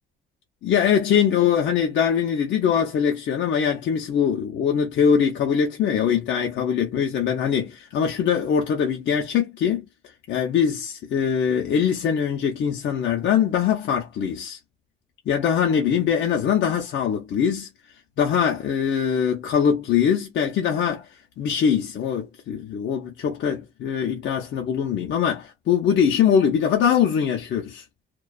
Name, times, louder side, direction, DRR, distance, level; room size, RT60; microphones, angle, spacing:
voice 1, 0.6-9.8 10.3-14.6 15.3-17.7 18.2-27.8, left 8 dB, 70° left, 0.6 m, -22 dB
2.4 x 2.2 x 2.3 m
cardioid pair, 90°, 20 cm